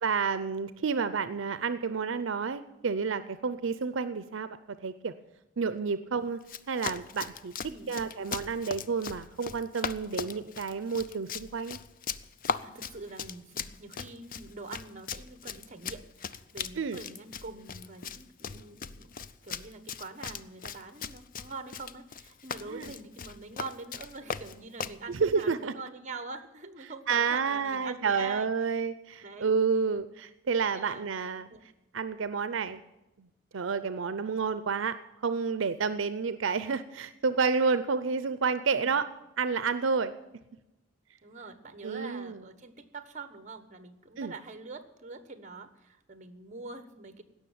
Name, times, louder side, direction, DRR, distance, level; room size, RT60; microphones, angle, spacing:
voice 1, 0.0-5.1 5.6-6.4 6.7-7.5 7.9-11.8 16.8-17.0 22.6-22.9 25.1-25.7 27.1-31.5 31.9-32.8 33.2-33.3 33.5-35.0 35.2-39.1 39.4-40.1 41.8-42.4 44.2-44.3, right 5 dB, 75° right, 13 dB, 0.6 m, -30 dB
Run, 6.4-25.0, left 6 dB, 45° left, 0.5 m, -39 dB
voice 2, 12.6-19.1 19.4-28.8 29.2-29.5 30.7-31.1 31.5-31.6 38.7-39.0 41.2-47.2, right 3 dB, 40° right, 11 dB, 1.2 m, -44 dB
17.0 x 6.4 x 9.3 m, 0.95 s
head